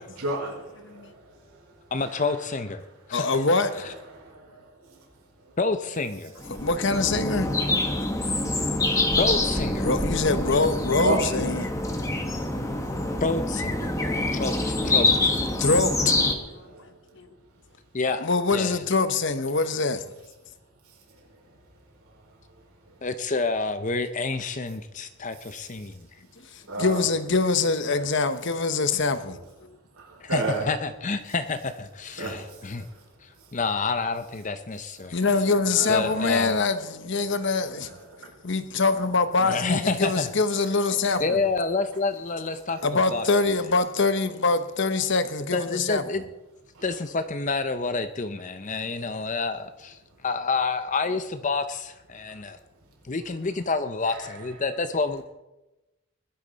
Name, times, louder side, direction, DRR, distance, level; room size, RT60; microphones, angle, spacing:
voice 1, 0.2-1.4 4.1-5.0 8.8-9.1 11.0-11.2 11.8-12.3 13.1-13.2 16.4-16.8 26.7-27.0 30.0-30.6 32.2-33.0 35.7-36.2 38.1-38.3 46.7-46.8 54.1-54.2, right 2 dB, 85° right, 5.1 m, -32 dB
voice 2, 1.9-2.8 3.1-3.2 5.6-6.3 9.2-9.9 13.2-13.9 14.3-15.3 17.9-18.8 23.0-26.1 30.2-32.9 33.2-35.2 35.9-36.5 39.4-40.3 41.2-43.2 45.5-46.2 46.8-52.6 53.0-55.2, left 3 dB, 35° left, 0.6 m, -28 dB
voice 3, 3.1-3.9 6.5-7.5 9.8-11.7 15.6-16.9 17.1-17.3 18.2-20.0 26.4-29.8 35.1-41.4 42.8-46.0, left 3 dB, 55° left, 1.0 m, -24 dB
sound 1, 6.4-16.3, left 2 dB, 15° left, 1.3 m, -25 dB
20.5 x 12.0 x 4.0 m
head